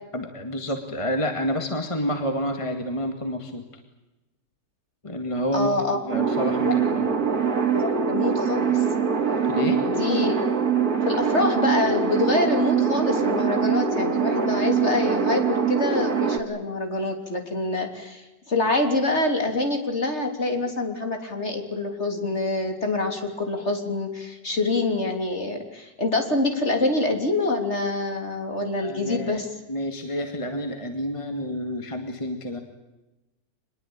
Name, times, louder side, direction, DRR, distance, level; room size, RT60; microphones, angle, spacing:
voice 1, 0.1-3.6 5.0-7.1 9.5-9.8 28.8-29.4 29.7-32.6, equal, 15° left, 5 dB, 2.2 m, -29 dB
voice 2, 5.5-6.0 6.6-6.7 7.7-8.8 9.8-10.4 11.1-29.5, left 2 dB, 40° left, 5 dB, 3.7 m, -26 dB
sound 1, 6.1-16.4, right 6 dB, 60° right, 2.7 m, -23 dB
26.0 x 21.0 x 8.9 m, 1.0 s
omnidirectional pair, 1.9 m